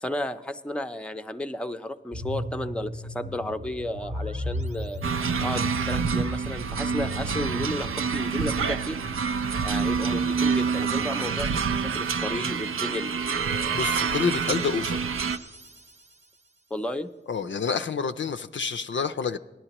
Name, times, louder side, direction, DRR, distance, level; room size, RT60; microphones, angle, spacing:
voice 1, 0.0-5.1 5.4-9.0 9.6-13.1 16.7-17.1, left 1 dB, 5° left, 9 dB, 0.5 m, -33 dB
sound 1, 2.1-8.0, left 1 dB, 70° right, 0.9 m, -35 dB
sound 2, 2.5-5.7 9.0-16.7, right 1 dB, 35° right, 0.7 m, -47 dB
sound 3, 5.0-15.4, right 5 dB, 90° right, 0.4 m, -27 dB
voice 2, 13.7-15.0 17.3-19.4, left 5 dB, 65° left, 11 dB, 0.4 m, -28 dB
18.5 x 11.0 x 2.9 m, 1.2 s
cardioid pair, 50°, 21 cm